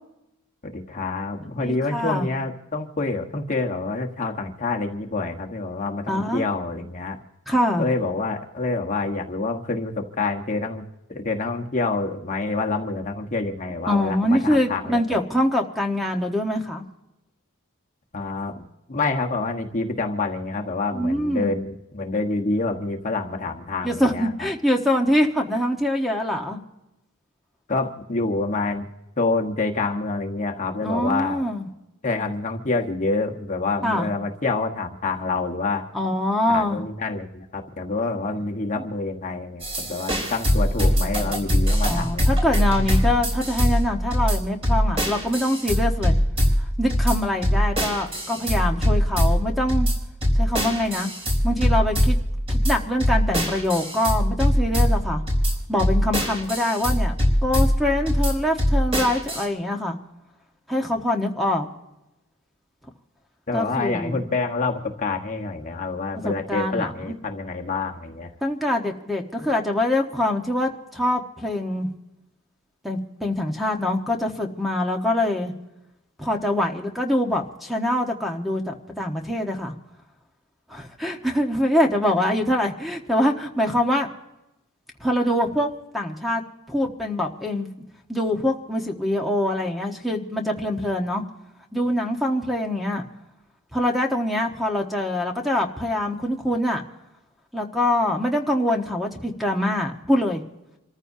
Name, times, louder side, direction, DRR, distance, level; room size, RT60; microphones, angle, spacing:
voice 1, 0.6-7.2 7.8-15.2 18.1-24.5 27.7-28.9 29.2-31.4 32.0-35.8 36.5-42.5 63.5-68.3, left 3 dB, 35° left, 2 dB, 1.3 m, -27 dB
voice 2, 1.5-2.3 6.1-6.4 7.5-7.9 13.8-16.8 20.9-21.5 23.8-26.6 30.8-31.7 33.8-34.1 35.9-36.8 38.3-38.4 38.7-38.8 41.9-46.1 46.8-49.9 50.4-51.1 51.4-52.2 52.5-55.2 55.7-57.2 57.4-60.0 60.7-61.7 63.5-64.2 66.2-67.1 68.4-71.9 72.8-75.5 76.2-79.7 80.7-84.1 85.0-86.4 86.7-87.7 88.1-91.2 91.7-93.0 93.7-96.8 97.5-100.4, left 1 dB, ahead, 2 dB, 1.2 m, -24 dB
sound 1, 39.6-59.4, equal, 30° right, 4.1 m, -22 dB
28.5 x 14.5 x 2.7 m, 0.95 s
head